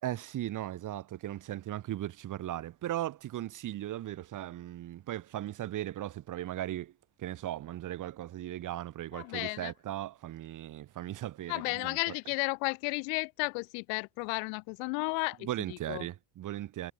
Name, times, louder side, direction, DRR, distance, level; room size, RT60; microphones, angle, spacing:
voice 1, 0.0-6.9 7.2-12.0 15.4-16.9, right 13 dB, 40° right, 2.1 m, -37 dB
voice 2, 9.1-9.7 11.5-16.1, left 40 dB or more, 80° left, 2.3 m, -33 dB
cardioid pair, 150°, 48 cm